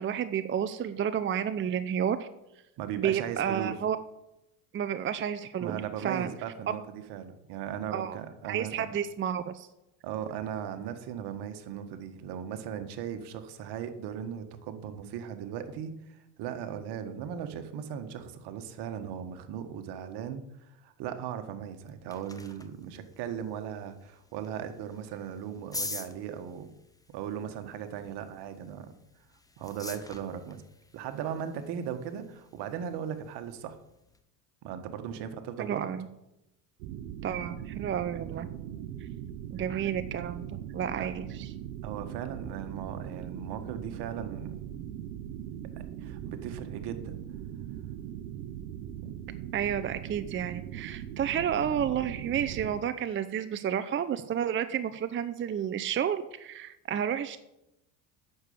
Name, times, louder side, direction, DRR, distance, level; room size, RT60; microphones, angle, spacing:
voice 1, 0.0-2.3 3.0-4.0 4.7-6.3 7.9-8.2 8.5-9.7 35.6-36.1 37.2-38.5 39.0-39.1 39.5-41.5 49.5-57.4, right 9 dB, 25° right, 11 dB, 0.6 m, -31 dB
voice 2, 2.8-3.7 5.6-9.0 10.0-26.7 27.1-28.9 29.6-30.6 30.9-33.8 34.6-35.9 41.0-41.1 41.8-44.6 46.0-47.2 49.0-49.1, right 8 dB, 60° right, 8 dB, 1.6 m, -38 dB
sound 1, 21.6-34.2, left 2 dB, 10° left, 1.1 m, -47 dB
sound 2, 36.8-52.8, right 10 dB, 80° right, 1.0 m, -40 dB
8.8 x 6.9 x 8.7 m, 0.89 s
supercardioid pair, 85°, 44 cm